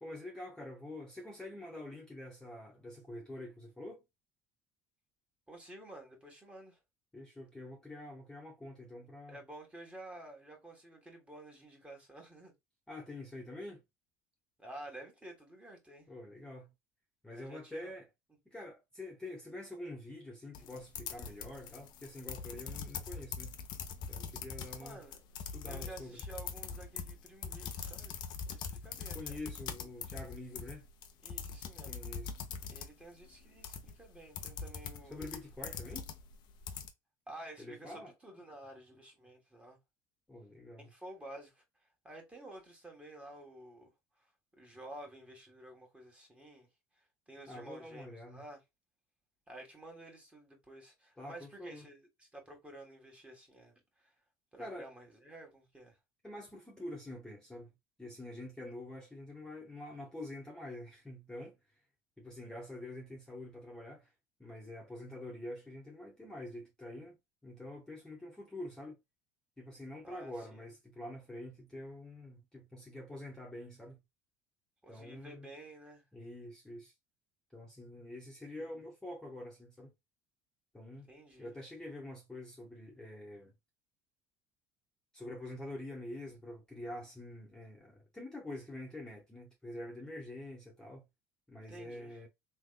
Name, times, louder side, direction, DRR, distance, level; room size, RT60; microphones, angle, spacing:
voice 1, 0.0-4.0 7.1-9.4 12.9-13.8 16.1-16.7 17.2-18.0 18.4-23.6 24.1-25.0 25.5-26.2 29.1-30.8 31.8-32.3 35.1-36.1 37.6-38.1 40.3-40.9 47.5-48.4 51.2-51.9 54.6-54.9 56.2-57.7 58.0-61.6 62.2-64.1 64.4-69.0 69.6-74.0 74.9-75.5 76.1-76.9 77.5-79.9 80.7-81.1 81.4-83.5 85.1-91.0 91.5-92.3, left 1 dB, 5° left, 1.2 m, -46 dB
voice 2, 5.5-6.8 9.3-12.5 14.6-16.1 17.3-17.9 24.8-25.2 25.7-28.2 28.5-29.4 31.2-32.0 32.7-35.3 37.3-39.8 40.8-41.6 42.0-43.9 44.6-46.7 47.3-48.6 49.5-54.1 54.5-56.0 70.0-70.3 74.8-76.0 81.1-81.5 91.7-92.2, right 1 dB, 15° right, 1.7 m, -51 dB
sound 1, 20.5-36.9, left 6 dB, 60° left, 0.7 m, -43 dB
3.5 x 3.1 x 2.2 m
supercardioid pair, 100°, 9 cm